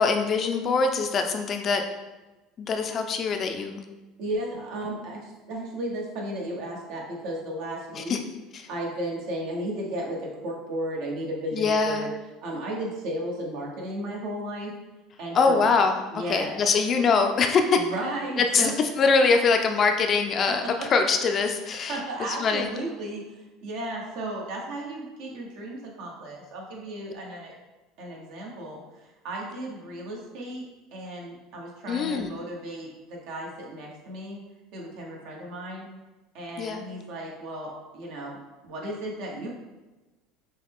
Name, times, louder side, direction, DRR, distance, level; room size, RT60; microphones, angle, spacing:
voice 1, 0.0-1.8 2.6-3.8 7.9-8.2 11.5-12.0 15.3-17.6 18.4-18.7 19.0-20.6 20.9-22.7 31.9-32.3 36.6-36.8, left 4 dB, 40° left, 5 dB, 0.5 m, -23 dB
voice 2, 4.2-8.2 8.7-12.1 12.4-14.7 15.2-15.7 16.1-16.5 17.7-18.7 20.8-20.9 21.9-23.2 23.6-27.5 28.0-28.8 29.2-30.6 30.9-34.4 34.7-35.9 36.3-39.5, right 1 dB, 70° right, -2 dB, 1.4 m, -34 dB
6.2 x 2.3 x 3.6 m, 1.1 s
supercardioid pair, 120°, 0 cm